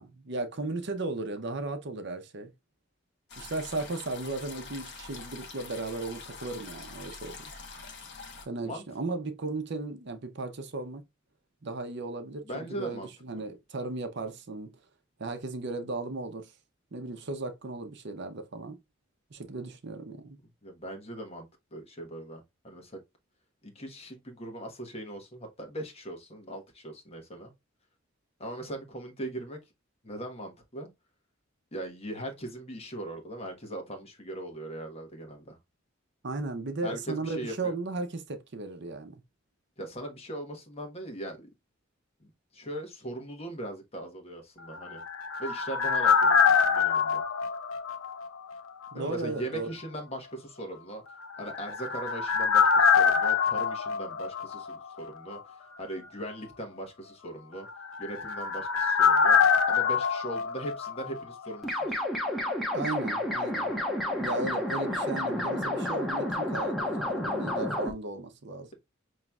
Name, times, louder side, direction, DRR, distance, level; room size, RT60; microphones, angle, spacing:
voice 1, 0.0-2.5 3.4-7.4 8.5-11.0 11.6-14.7 15.2-16.5 16.9-18.8 19.3-20.4 36.2-39.1 48.9-49.7 62.7-63.7 64.2-68.7, right 3 dB, 60° right, 0.7 m, -36 dB
sound 1, 3.3-8.5, left 4 dB, 60° left, 1.1 m, -45 dB
voice 2, 12.4-13.4 20.6-23.0 23.6-27.5 28.4-29.6 30.0-30.9 31.7-35.6 36.8-37.8 39.8-41.5 42.2-45.0 45.4-47.2 48.9-51.0 51.4-57.7 58.0-62.0, right 1 dB, 30° left, 1.2 m, -40 dB
sound 2, 44.7-48.6 48.8-48.9 51.3-55.1 55.3-55.4 57.7-61.5 61.8-61.9, left 6 dB, 80° left, 0.7 m, -25 dB
sound 3, 61.6-67.9, left 1 dB, ahead, 1.0 m, -30 dB
5.6 x 3.0 x 2.3 m
head